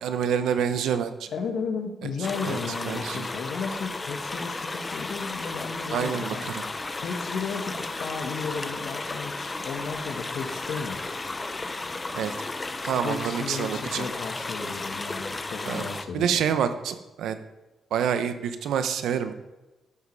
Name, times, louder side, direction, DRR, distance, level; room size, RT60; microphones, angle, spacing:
voice 1, 0.0-1.3 2.4-2.6 2.8-3.3 5.9-6.6 12.1-12.3 12.8-14.1 15.7-15.8 16.1-17.4 17.9-19.3, right 8 dB, 90° right, 10 dB, 0.9 m, -27 dB
voice 2, 1.3-6.5 7.0-11.0 13.0-16.4, left 5 dB, 65° left, 4 dB, 1.8 m, -34 dB
sound 1, 2.2-16.0, left 3 dB, 20° left, 0.7 m, -34 dB
13.0 x 8.4 x 4.9 m, 1.1 s
cardioid pair, 150°, 0 cm